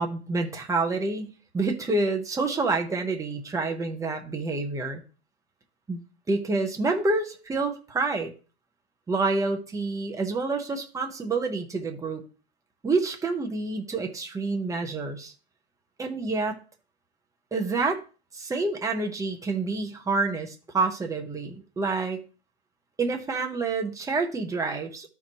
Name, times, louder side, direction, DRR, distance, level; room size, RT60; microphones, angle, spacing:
voice 1, 0.0-5.0 5.9-6.0 6.3-8.3 9.1-12.2 12.8-15.3 16.0-16.6 17.5-18.0 18.3-22.2 23.0-25.1, right 3 dB, 10° right, 3 dB, 1.2 m, -28 dB
13.0 x 4.7 x 3.1 m, 0.35 s
hypercardioid pair, 120°, 33 cm